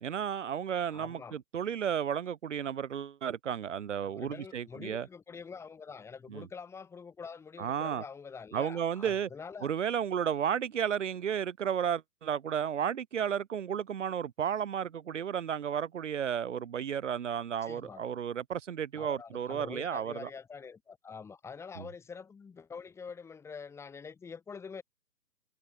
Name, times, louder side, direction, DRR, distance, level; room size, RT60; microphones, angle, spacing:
voice 1, 0.0-5.1 6.3-6.5 7.6-8.0 8.5-9.3 9.6-20.3 21.8-21.9, right 8 dB, 45° right, 4.5 m, -33 dB
voice 2, 0.9-1.4 4.0-9.7 17.6-18.1 18.9-24.8, left 5 dB, 5° left, 2.9 m, -45 dB
figure-of-eight pair, 145°, 50 cm